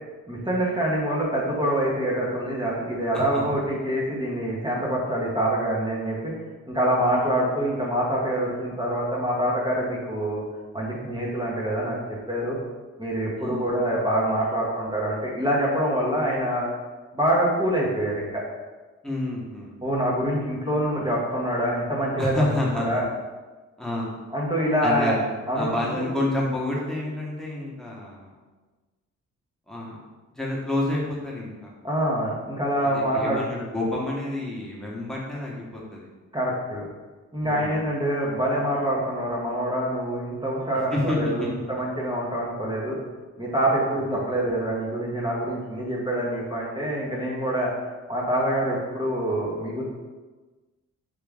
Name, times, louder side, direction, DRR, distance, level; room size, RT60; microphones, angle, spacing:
voice 1, 0.3-6.3 6.7-10.4 10.7-12.0 12.3-12.6 13.0-16.7 17.1-18.4 19.8-22.4 22.7-23.0 24.3-25.2 25.5-26.0 31.8-33.4 36.3-36.9 37.3-43.0 43.4-47.7 48.1-49.8, right 1 dB, 15° right, -5 dB, 1.0 m, -25 dB
voice 2, 13.4-13.7 19.0-19.8 22.2-23.0 23.8-24.1 24.8-25.3 25.5-28.3 29.7-30.0 30.3-31.7 32.8-36.1 37.4-37.8 40.9-41.5 44.0-44.2, left 1 dB, ahead, -5 dB, 1.2 m, -29 dB
3.5 x 3.3 x 3.5 m, 1.3 s
cardioid pair, 75°, 30 cm